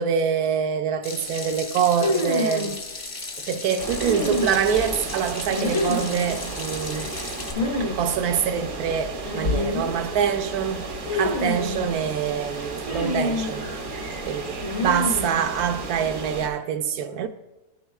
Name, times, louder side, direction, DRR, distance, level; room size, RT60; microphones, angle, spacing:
voice 1, 0.0-2.8 3.4-7.2 7.8-13.9 14.3-14.4 14.8-17.3, right 7 dB, 75° right, 1.1 m, -25 dB
Water tap faucet / Sink (filling or washing), 1.0-7.5, left 3 dB, 55° left, 0.3 m, -36 dB
sound 1, 2.0-2.7 4.0-4.8 5.5-6.2 7.5-8.0 8.2-8.3 9.2-9.9 11.1-11.8 12.8-13.6 14.6-15.4, left 2 dB, 80° left, 2.9 m, -27 dB
sound 2, 3.8-16.5, right 3 dB, 45° right, 0.7 m, -34 dB
14.0 x 6.3 x 2.3 m
omnidirectional pair, 1.7 m